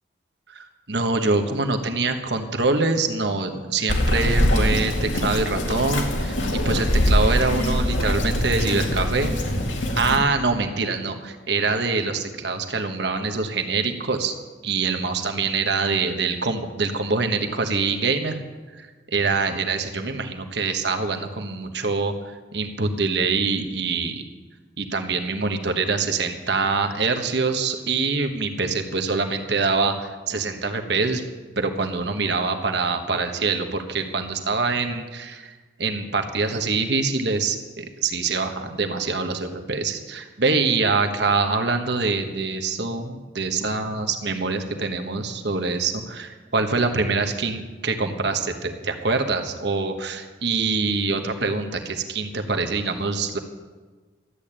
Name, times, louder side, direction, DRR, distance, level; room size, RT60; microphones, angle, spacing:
voice 1, 0.5-9.3 9.9-14.3 14.6-18.4 18.8-24.2 24.8-31.2 31.6-35.5 35.8-53.4, right 4 dB, 65° right, 6 dB, 1.3 m, -24 dB
Bird vocalization bird call bird song, 3.9-10.2, left 1 dB, 85° left, 2.3 m, -23 dB
13.0 x 8.6 x 8.9 m, 1.4 s
head